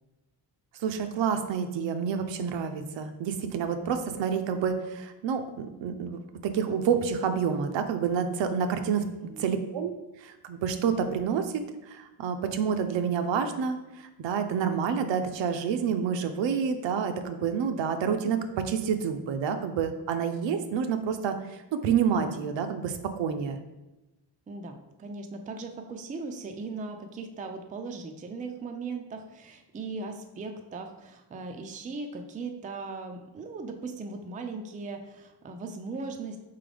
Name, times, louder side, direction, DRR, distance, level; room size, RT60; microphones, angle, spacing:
voice 1, 0.8-9.0 9.4-23.6, right 7 dB, 75° right, 7 dB, 0.6 m, -28 dB
voice 2, 9.0-9.6 24.5-36.4, right 3 dB, 20° right, 5 dB, 0.3 m, -38 dB
4.0 x 3.8 x 3.3 m, 1.0 s
cardioid pair, 110°, 45 cm